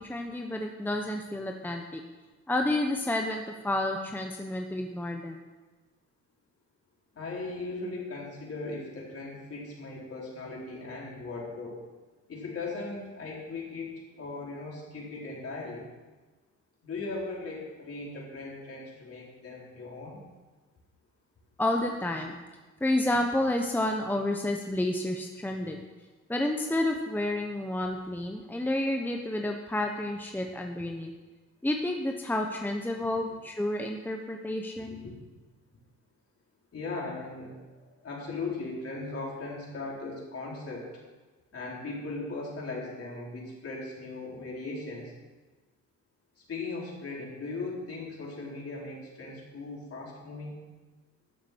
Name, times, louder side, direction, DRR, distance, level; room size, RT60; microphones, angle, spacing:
voice 1, 0.0-2.0 2.5-5.4 21.6-22.4 22.8-25.8 26.3-31.1 31.6-35.0, left 1 dB, 5° left, 2 dB, 1.0 m, -30 dB
voice 2, 7.1-11.8 12.3-15.9 16.8-20.2 33.0-33.1 34.8-35.1 36.7-41.0 41.5-45.1 46.4-50.5, left 3 dB, 50° left, -4 dB, 4.5 m, -38 dB
13.0 x 7.4 x 6.2 m, 1.3 s
cardioid pair, 90°, 30 cm